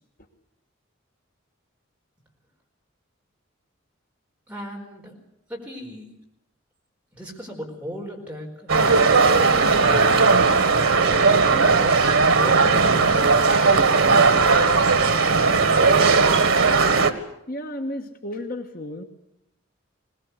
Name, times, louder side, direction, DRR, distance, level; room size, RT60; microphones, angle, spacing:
voice 1, 4.5-5.1 5.5-6.1 7.1-8.7 9.3-10.4 11.4-13.8, equal, 5° right, -1 dB, 4.7 m, -36 dB
sound 1, 8.7-17.1, right 4 dB, 85° right, 1.5 m, -17 dB
voice 2, 17.5-19.0, left 1 dB, 45° left, 5 dB, 1.4 m, -32 dB
21.5 x 19.5 x 8.1 m, 0.80 s
head